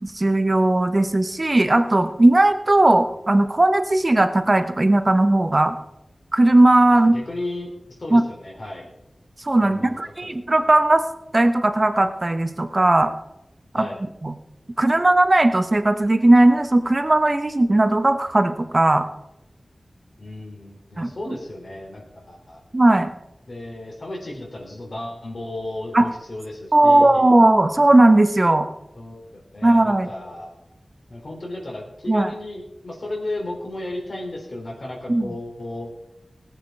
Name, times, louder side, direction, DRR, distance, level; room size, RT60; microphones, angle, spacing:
voice 1, 0.0-5.8 6.3-7.2 8.1-8.2 9.4-11.0 11.3-13.1 13.7-13.9 14.2-14.3 14.8-19.1 21.0-21.3 22.7-23.1 25.9-26.1 26.7-28.7 29.6-30.1 32.1-32.3 35.1-35.4, right 2 dB, 35° right, 9 dB, 1.1 m, -17 dB
voice 2, 6.9-8.9 9.6-10.3 13.7-14.0 20.2-22.6 23.5-27.3 28.9-30.5 31.1-35.9, left 1 dB, 55° left, -1 dB, 3.9 m, -34 dB
18.0 x 8.3 x 4.8 m, 0.90 s
wide cardioid pair, 80°, 0 cm